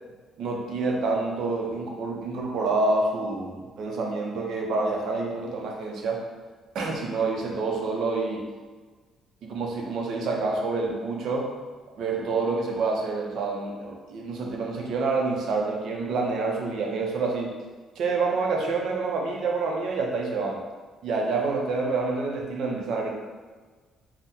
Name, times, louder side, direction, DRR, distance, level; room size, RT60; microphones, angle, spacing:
voice 1, 0.4-6.2 6.7-8.5 9.4-11.6 12.0-17.5 18.0-20.6 21.0-23.3, right 3 dB, 65° right, 0 dB, 0.5 m, -27 dB
3.4 x 2.0 x 2.7 m, 1.4 s
cardioid pair, 135°, 0 cm